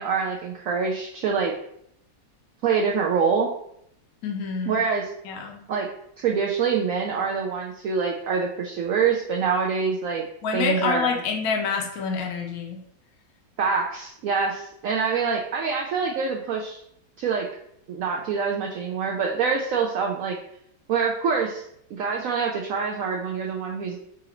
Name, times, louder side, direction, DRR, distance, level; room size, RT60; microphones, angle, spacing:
voice 1, 0.0-1.5 2.6-3.5 4.6-5.1 5.7-5.9 6.2-10.2 10.5-11.2 13.6-16.8 17.2-17.5 17.9-20.4 20.9-21.6 21.9-24.0, right 5 dB, 75° right, 0 dB, 0.7 m, -25 dB
voice 2, 4.2-4.8 5.2-5.6 10.4-12.8, left 5 dB, 65° left, 1 dB, 1.0 m, -27 dB
3.9 x 2.5 x 4.2 m, 0.72 s
omnidirectional pair, 1.9 m